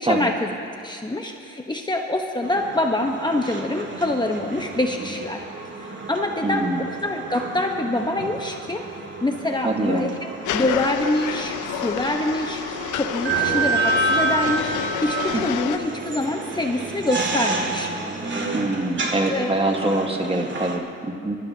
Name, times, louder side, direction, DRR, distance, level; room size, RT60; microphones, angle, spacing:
voice 1, 0.0-5.4 5.8-8.8 9.2-14.7 15.0-17.9 19.3-19.5, left 1 dB, 15° left, 2 dB, 1.0 m, -25 dB
sound 1, 2.4-20.8, right 3 dB, 40° right, 2.1 m, -29 dB
voice 2, 6.4-6.8 9.6-10.1 15.3-15.4 18.5-21.4, right 2 dB, 20° right, 3 dB, 1.5 m, -24 dB
sound 2, 10.5-15.8, left 11 dB, 85° left, 0.7 m, -29 dB
27.0 x 13.0 x 2.8 m, 2.7 s
cardioid pair, 90°, 30 cm